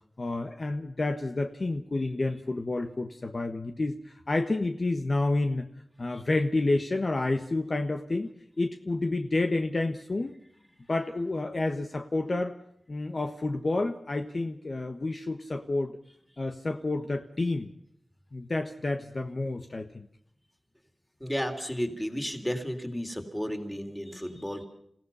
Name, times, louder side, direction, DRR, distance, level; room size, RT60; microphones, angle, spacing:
voice 1, 0.2-5.7 6.0-8.3 8.6-10.3 10.9-12.6 12.9-16.0 16.4-17.7 18.3-20.1, left 2 dB, 45° left, 5 dB, 1.3 m, -29 dB
voice 2, 21.2-24.7, equal, 5° left, 5 dB, 3.5 m, -33 dB
29.0 x 16.5 x 5.6 m, 0.72 s
wide cardioid pair, 90°, 0 cm